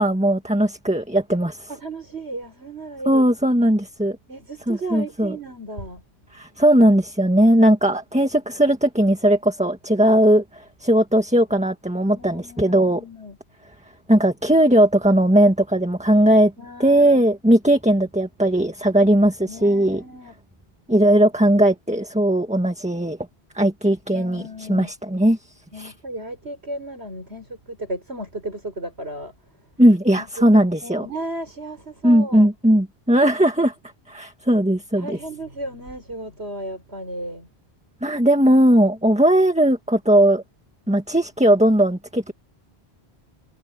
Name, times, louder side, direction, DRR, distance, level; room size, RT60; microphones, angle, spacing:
voice 1, 0.0-1.7 3.0-4.2 4.7-5.4 6.3-13.0 14.1-16.5 16.8-20.0 20.9-23.2 23.5-25.4 25.8-25.9 29.8-31.1 32.0-33.7 34.1-35.2 38.0-40.4 40.9-42.3, right 1 dB, 5° right, 1.7 m, -18 dB
voice 2, 1.7-3.3 4.3-6.0 12.1-13.4 16.6-17.2 19.5-20.3 24.1-24.9 25.7-29.3 30.2-30.4 30.8-32.5 35.0-37.5, right 1 dB, 85° right, 5.9 m, -34 dB
omnidirectional pair, 1.1 m